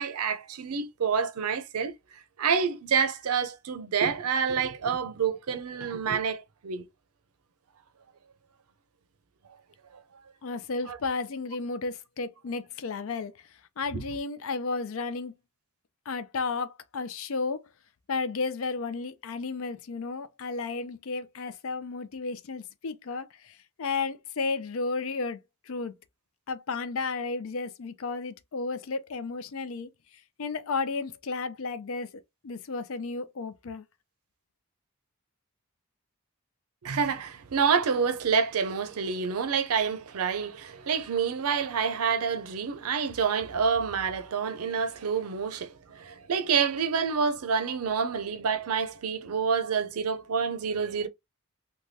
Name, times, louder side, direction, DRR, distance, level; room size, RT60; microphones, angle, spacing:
voice 1, 0.0-1.9 2.4-6.9 10.9-11.0 36.8-51.1, right 6 dB, 85° right, 0.5 m, -28 dB
voice 2, 10.4-13.3 13.8-15.3 16.1-17.6 18.1-25.4 25.7-25.9 26.5-29.9 30.4-32.1 32.4-33.8, left 4 dB, 70° left, 0.5 m, -33 dB
3.2 x 2.2 x 2.6 m
head